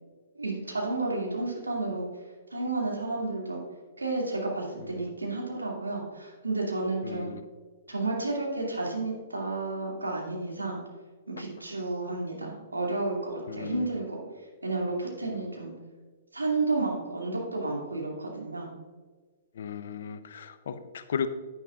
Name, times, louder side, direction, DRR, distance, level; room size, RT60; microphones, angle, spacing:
voice 1, 0.3-2.0 2.5-3.6 4.0-7.3 7.9-10.8 11.3-14.2 14.6-15.7 16.3-18.7, right 2 dB, 90° right, -2 dB, 2.4 m, -31 dB
voice 2, 7.0-7.4 13.5-13.9 19.6-21.3, left 7 dB, 65° left, 11 dB, 0.6 m, -35 dB
9.9 x 9.5 x 2.5 m, 1.4 s
figure-of-eight pair, 115°, 0 cm